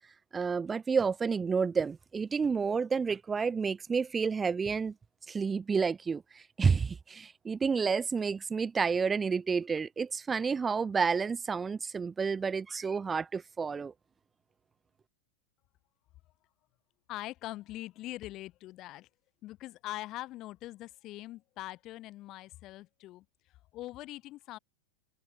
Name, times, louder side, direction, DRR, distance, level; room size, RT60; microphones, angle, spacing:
voice 1, 0.3-4.9 5.3-6.2 6.6-13.9, right 5 dB, 15° right, 1.0 m, -30 dB
voice 2, 17.1-19.1 19.4-23.2 23.7-24.6, left 16 dB, 35° left, 7.8 m, -42 dB
figure-of-eight pair, 90°, 0 cm